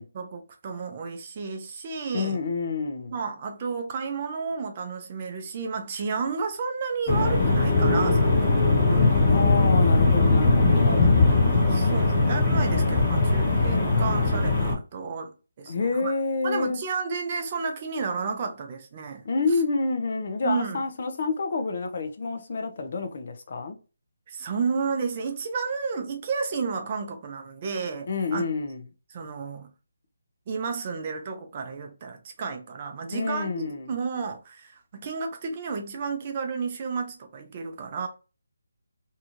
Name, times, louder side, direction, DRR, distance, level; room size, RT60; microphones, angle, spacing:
voice 1, 0.1-2.4 3.1-9.1 10.9-15.3 15.6-16.1 16.4-19.2 20.4-20.8 24.3-28.4 29.1-29.7 30.5-38.1, right 5 dB, 30° right, 0.5 m, -32 dB
voice 2, 2.1-3.1 9.2-11.2 15.7-16.8 19.2-23.8 28.1-28.8 33.1-33.9, left 4 dB, 45° left, 0.6 m, -28 dB
sound 1, 7.1-14.7, left 3 dB, 25° left, 1.0 m, -20 dB
2.7 x 2.3 x 2.9 m
hypercardioid pair, 165°, 0 cm